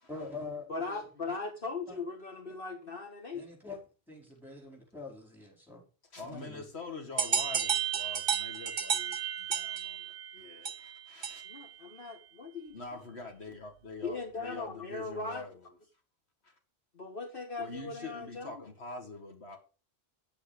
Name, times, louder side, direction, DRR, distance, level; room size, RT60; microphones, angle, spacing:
voice 1, 0.1-1.1 1.9-2.0 3.3-3.8 4.1-5.8 6.2-6.6, left 3 dB, ahead, 5.0 m, -44 dB
voice 2, 0.7-3.5 11.5-13.0 14.0-15.5 16.9-18.6, left 3 dB, 60° left, 1.5 m, -39 dB
voice 3, 6.1-11.5 12.7-15.7 16.4-16.5 17.6-19.6, left 3 dB, 80° left, 2.3 m, -45 dB
sound 1, 7.2-11.7, right 8 dB, 60° right, 1.0 m, -32 dB
9.9 x 8.5 x 5.1 m
omnidirectional pair, 1.1 m